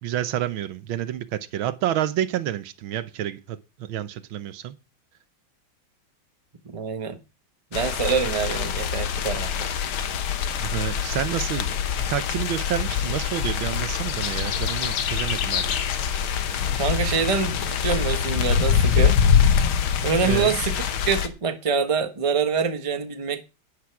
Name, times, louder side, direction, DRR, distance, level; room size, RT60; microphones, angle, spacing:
voice 1, 0.0-4.7 10.6-15.8 20.2-20.5, right 11 dB, 80° right, 1.6 m, -29 dB
voice 2, 6.7-7.2 7.7-9.7 16.8-19.2 20.0-23.4, right 5 dB, 20° right, 1.0 m, -25 dB
sound 1, 7.7-21.3, left 7 dB, 85° left, 2.0 m, -24 dB
12.0 x 10.0 x 4.8 m
omnidirectional pair, 2.2 m